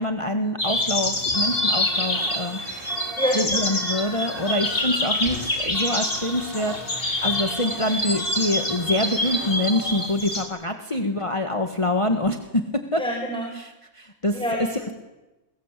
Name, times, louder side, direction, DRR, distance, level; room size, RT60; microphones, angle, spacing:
voice 1, 0.0-13.0 13.6-14.4, left 1 dB, 20° left, 5 dB, 1.8 m, -26 dB
sound 1, 0.6-10.4, left 1 dB, 70° left, 5.2 m, -26 dB
sound 2, 1.3-10.1, right 2 dB, 40° right, 2.3 m, -39 dB
sound 3, 2.4-5.9, left 1 dB, 50° left, 4.6 m, -41 dB
voice 2, 3.2-3.7 13.0-13.6 14.3-14.9, equal, 5° left, 1 dB, 5.0 m, -27 dB
28.5 x 23.0 x 8.4 m, 1.0 s
omnidirectional pair, 1.5 m